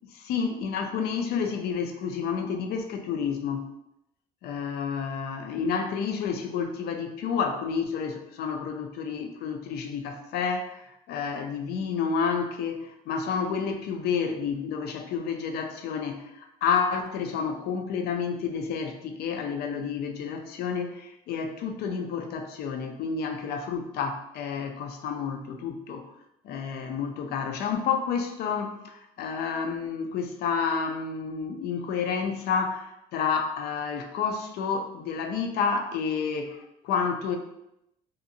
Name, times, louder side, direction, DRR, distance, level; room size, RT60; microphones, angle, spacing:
voice 1, 0.3-3.7 4.4-26.1 26.4-37.4, left 6 dB, 70° left, 5 dB, 0.4 m, -30 dB
2.7 x 2.5 x 2.6 m, 0.84 s
cardioid pair, 110°, 17 cm